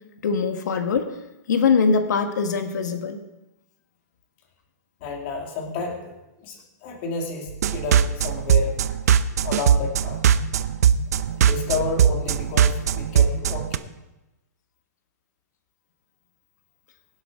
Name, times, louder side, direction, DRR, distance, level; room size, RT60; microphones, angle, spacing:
voice 1, 0.2-1.1 1.5-3.2, left 5 dB, 85° left, 7 dB, 1.6 m, -22 dB
voice 2, 5.0-8.8 9.4-10.2 11.3-13.9, left 3 dB, 35° left, 0 dB, 2.4 m, -31 dB
sound 1, 7.5-13.8, right 8 dB, 65° right, 0.6 m, -20 dB
24.0 x 8.1 x 3.8 m, 0.97 s
hypercardioid pair, 175°, 9 cm